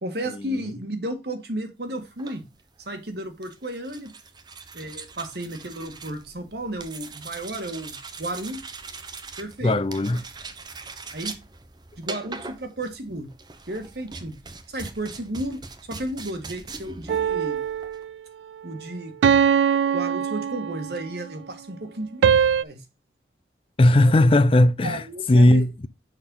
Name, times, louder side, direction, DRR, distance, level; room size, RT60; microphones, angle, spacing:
voice 1, 0.0-2.4 2.9-4.1 4.7-8.6 9.4-9.8 11.1-11.4 12.0-13.3 13.7-14.3 14.7-15.6 15.9-17.6 18.6-19.1 19.9-22.8 24.8-25.7, right 1 dB, 65° right, 1.7 m, -33 dB
sound 1, 2.0-18.0, right 4 dB, 25° right, 0.8 m, -41 dB
voice 2, 9.6-10.2 23.8-25.0 25.3-25.9, left 1 dB, 30° left, 0.4 m, -17 dB
sound 2, 17.1-18.1 19.2-21.1 22.2-22.6, right 7 dB, 90° right, 0.3 m, -21 dB
6.6 x 5.6 x 3.7 m
head